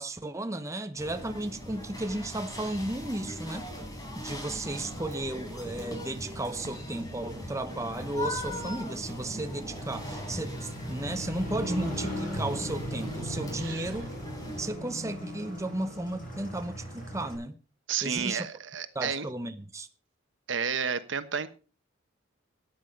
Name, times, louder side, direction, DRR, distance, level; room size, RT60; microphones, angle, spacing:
voice 1, 0.0-3.7 4.2-14.1 14.6-17.5 18.0-18.5 18.9-19.9, right 1 dB, 15° right, 0.8 m, -34 dB
sound 1, 1.0-14.7, equal, 20° left, 4.1 m, -40 dB
Motorcycle, 4.8-17.4, equal, 45° left, 7.1 m, -40 dB
voice 2, 17.9-19.3 20.5-21.5, right 6 dB, 70° right, 1.2 m, -31 dB
13.5 x 9.7 x 5.3 m
head